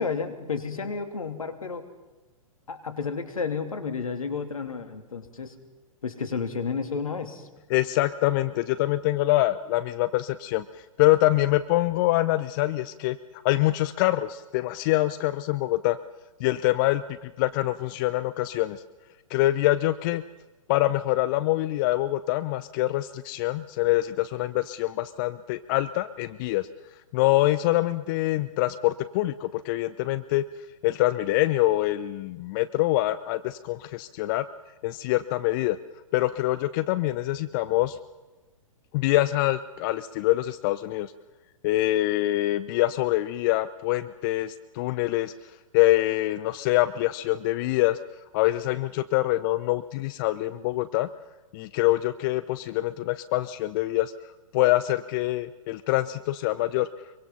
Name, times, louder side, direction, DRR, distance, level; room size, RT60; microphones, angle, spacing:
voice 1, 0.0-1.9 2.7-5.5 6.0-7.5, left 5 dB, 75° left, 8 dB, 3.0 m, -31 dB
voice 2, 7.7-13.2 13.4-16.0 16.4-18.8 19.3-20.2 20.7-26.7 27.1-30.4 30.8-34.5 34.8-35.8 36.1-38.0 38.9-41.1 41.6-45.3 45.7-48.0 48.3-51.1 51.5-54.1 54.5-56.9, left 16 dB, 35° left, 14 dB, 0.8 m, -25 dB
25.0 x 24.0 x 5.7 m, 1.2 s
figure-of-eight pair, 115°, 18 cm